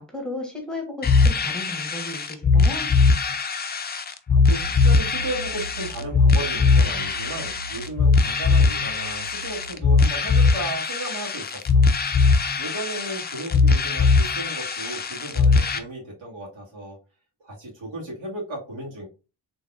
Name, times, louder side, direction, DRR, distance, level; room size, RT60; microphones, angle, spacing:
voice 1, 0.0-2.9, left 2 dB, ahead, 0 dB, 1.2 m, -34 dB
sound 1, 1.0-15.8, left 4 dB, 25° left, 0.3 m, -20 dB
voice 2, 4.3-11.8 12.6-17.0 17.4-19.1, right 2 dB, 90° right, -5 dB, 2.1 m, -35 dB
sound 2, 4.6-9.8, right 2 dB, 45° right, 0.4 m, -38 dB
3.9 x 3.5 x 2.4 m, 0.31 s
wide cardioid pair, 120°, 46 cm